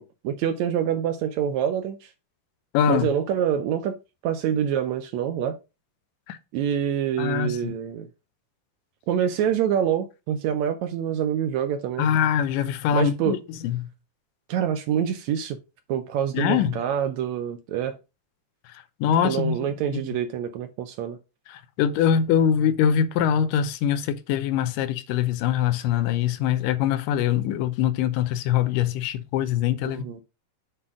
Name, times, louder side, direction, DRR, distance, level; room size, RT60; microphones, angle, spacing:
voice 1, 0.0-2.1 2.9-4.0 4.2-5.6 6.5-8.1 9.1-12.1 12.9-13.4 14.5-15.6 15.9-18.0 19.2-21.2 29.9-30.2, right 9 dB, 75° right, 1.7 m, -26 dB
voice 2, 2.7-3.1 6.3-6.4 7.2-7.7 12.0-13.4 13.6-13.9 16.3-16.8 19.0-19.6 19.9-20.0 21.5-30.0, left 9 dB, 90° left, 2.4 m, -23 dB
7.7 x 4.2 x 4.9 m
omnidirectional pair, 3.7 m